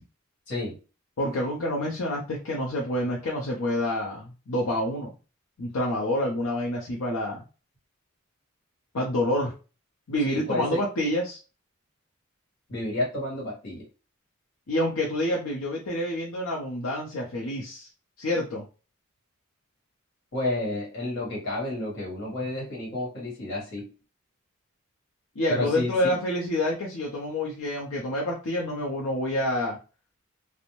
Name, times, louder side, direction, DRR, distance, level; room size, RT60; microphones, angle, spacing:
voice 1, 0.5-0.8 10.2-10.8 12.7-13.8 20.3-23.9 25.5-26.2, left 2 dB, 55° left, -3 dB, 1.4 m, -30 dB
voice 2, 1.2-5.1 5.6-7.4 8.9-9.5 10.1-11.4 14.7-17.9 18.2-18.7 25.4-29.8, left 1 dB, 85° left, -2 dB, 0.6 m, -28 dB
2.5 x 2.1 x 3.0 m, 0.33 s
head